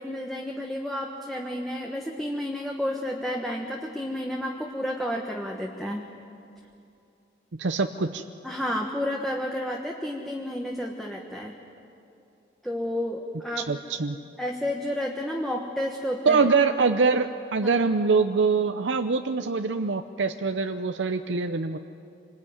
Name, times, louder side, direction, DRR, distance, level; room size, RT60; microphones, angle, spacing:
voice 1, 0.0-6.0 8.4-11.5 12.6-13.7 14.4-16.4 17.6-17.8, left 1 dB, ahead, 0 dB, 1.4 m, -31 dB
voice 2, 7.5-8.2 13.6-14.2 16.3-21.8, right 4 dB, 75° right, 8 dB, 0.7 m, -24 dB
26.0 x 20.5 x 9.7 m, 2.7 s
head